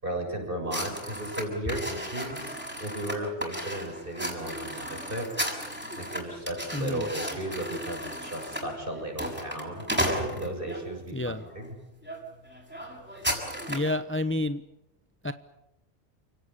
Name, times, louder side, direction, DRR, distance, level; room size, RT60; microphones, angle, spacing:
voice 1, 0.0-5.3 5.9-9.9 10.4-11.7, right 1 dB, 50° right, 2 dB, 7.4 m, -35 dB
sound 1, 0.7-10.8 11.4-11.7 12.0-12.2 12.4-13.9, equal, 10° right, 6.7 m, -34 dB
voice 2, 6.7-7.1 11.1-11.4 13.7-14.6 15.2-15.3, left 2 dB, 10° left, 11 dB, 0.8 m, -29 dB
30.0 x 17.5 x 9.9 m, 0.88 s
omnidirectional pair, 1.2 m